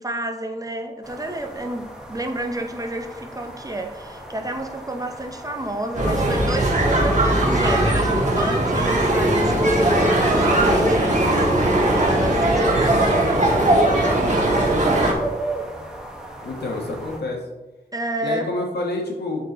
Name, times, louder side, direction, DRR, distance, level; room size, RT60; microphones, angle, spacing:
voice 1, 0.0-11.4 12.0-13.8 17.9-18.5, right 1 dB, 20° right, 5 dB, 0.7 m, -30 dB
sound 1, 1.0-17.2, right 2 dB, 5° right, 1.4 m, -36 dB
sound 2, 6.0-15.1, right 1 dB, 45° right, 1.6 m, -19 dB
voice 2, 16.4-17.4 18.2-19.5, left 2 dB, 85° left, 0 dB, 1.5 m, -28 dB
7.8 x 4.4 x 4.2 m, 1.1 s
wide cardioid pair, 95°, 17 cm